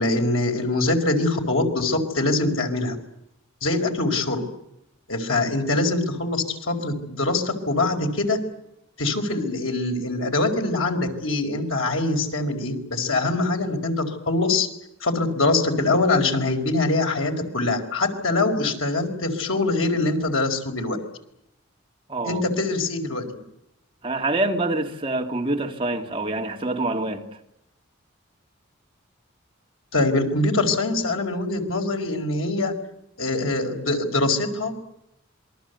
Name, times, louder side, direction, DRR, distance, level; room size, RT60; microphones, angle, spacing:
voice 1, 0.0-3.0 3.6-4.4 5.1-8.4 9.0-14.7 15.0-21.0 22.2-23.2 29.9-32.7 33.2-34.8, left 2 dB, 90° left, 5.0 m, -23 dB
voice 2, 22.1-22.4 24.0-27.2, right 2 dB, 25° right, 2.5 m, -26 dB
27.5 x 23.0 x 8.2 m
head